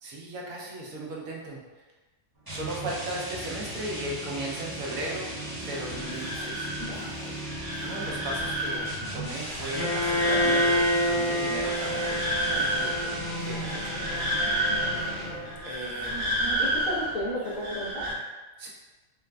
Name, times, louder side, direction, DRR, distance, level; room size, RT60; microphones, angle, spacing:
voice 1, 0.0-1.6 2.5-5.3 5.6-6.7 7.8-14.0 15.6-16.3 18.6-18.7, right 1 dB, 80° right, -3 dB, 1.1 m, -36 dB
sound 1, 2.5-15.5, equal, 20° right, 0.8 m, -37 dB
sound 2, 5.6-18.1, right 1 dB, 55° right, 1.1 m, -31 dB
Bowed string instrument, 9.7-15.7, equal, 55° left, 0.8 m, -29 dB
voice 2, 14.7-15.0 16.4-18.1, equal, 75° left, -5 dB, 1.2 m, -34 dB
3.9 x 2.2 x 2.4 m, 1.2 s
omnidirectional pair, 1.4 m